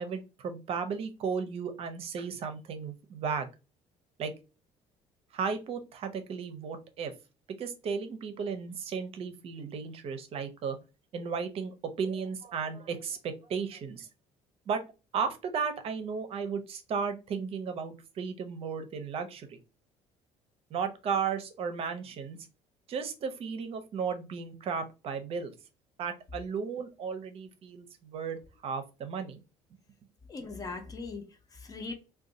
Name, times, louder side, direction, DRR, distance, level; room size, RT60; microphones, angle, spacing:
voice 1, 0.0-3.5 4.2-4.3 5.3-7.1 7.6-10.8 11.1-14.1 14.7-14.8 15.1-19.6 20.7-22.4 22.9-25.5 26.0-29.4, right 6 dB, 50° right, 0.6 m, -34 dB
voice 2, 30.3-31.9, left 3 dB, 30° left, 0.7 m, -40 dB
2.5 x 2.3 x 3.9 m
cardioid pair, 125°, 13 cm